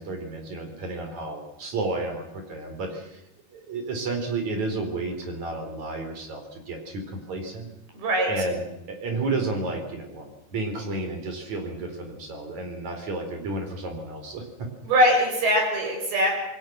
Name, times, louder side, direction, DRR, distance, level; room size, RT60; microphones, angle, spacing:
voice 1, 0.0-3.2 3.5-7.7 8.3-14.7, right 3 dB, 45° right, 5 dB, 5.2 m, -32 dB
voice 2, 7.9-8.3 14.8-16.3, equal, 65° right, 1 dB, 8.6 m, -21 dB
27.0 x 21.5 x 6.2 m, 0.87 s
omnidirectional pair, 4.6 m